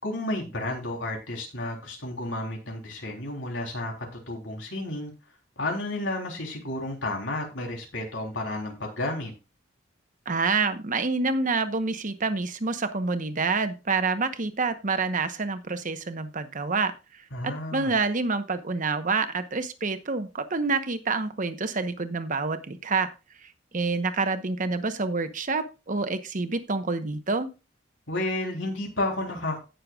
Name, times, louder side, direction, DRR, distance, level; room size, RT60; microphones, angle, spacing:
voice 1, 0.0-5.1 5.6-9.3 17.3-17.9 28.1-29.6, left 1 dB, 85° left, 1 dB, 3.6 m, -32 dB
voice 2, 10.3-16.9 17.4-23.1 23.7-27.5, right 4 dB, 45° right, 9 dB, 1.0 m, -27 dB
17.0 x 6.7 x 2.4 m, 0.30 s
head